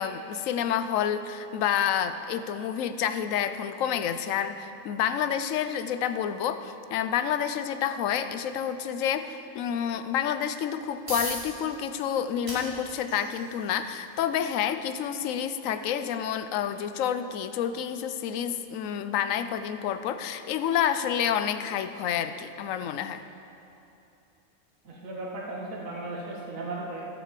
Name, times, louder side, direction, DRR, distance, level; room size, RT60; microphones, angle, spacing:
voice 1, 0.0-23.2, left 9 dB, 70° left, 11 dB, 0.9 m, -29 dB
sound 1, 10.7-25.5, right 1 dB, 20° right, 2.8 m, -45 dB
voice 2, 24.8-27.1, right 2 dB, 65° right, -4 dB, 2.0 m, -36 dB
13.0 x 6.6 x 7.4 m, 2.8 s
omnidirectional pair, 1.6 m